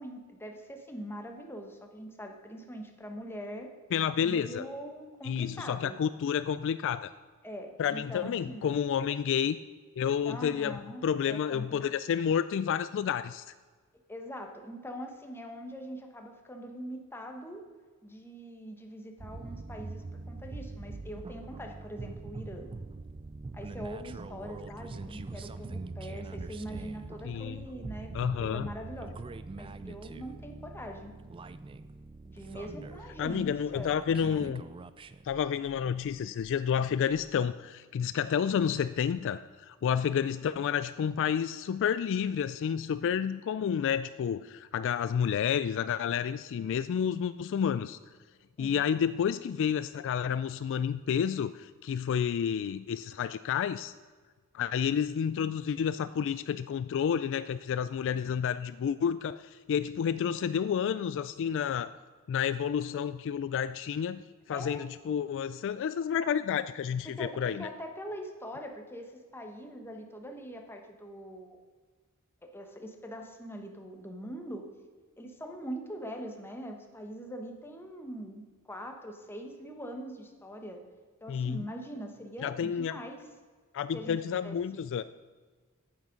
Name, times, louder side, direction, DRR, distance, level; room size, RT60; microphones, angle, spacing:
voice 1, 0.0-3.7 4.2-6.0 7.4-8.8 10.2-11.8 14.1-17.6 18.0-22.7 23.5-29.1 29.6-31.1 32.2-34.7 48.6-48.8 64.5-64.9 67.0-71.6 72.4-74.6 75.2-80.8 81.2-83.2 83.9-84.9, equal, 10° left, 3 dB, 1.2 m, -43 dB
voice 2, 3.9-4.6 5.2-7.1 7.8-9.6 10.0-13.4 27.2-27.6 28.1-28.7 33.2-34.6 35.2-48.0 48.6-53.9 54.5-61.9 62.3-64.2 64.5-67.7 81.3-81.7 82.4-83.0 83.7-85.0, left 8 dB, 60° left, 14 dB, 0.3 m, -30 dB
sound 1, 19.2-36.6 37.1-37.3, right 3 dB, 25° right, 0.3 m, -43 dB
9.2 x 8.5 x 5.2 m, 1.4 s
head